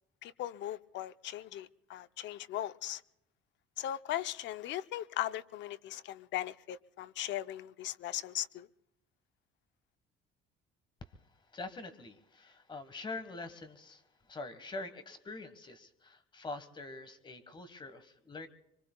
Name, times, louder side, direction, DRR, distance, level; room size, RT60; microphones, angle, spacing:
voice 1, 0.2-3.0 3.8-8.7, left 13 dB, 65° left, 0.6 m, -38 dB
voice 2, 11.5-18.5, left 3 dB, 25° left, 1.4 m, -45 dB
25.0 x 25.0 x 2.2 m
cardioid pair, 135°, 20 cm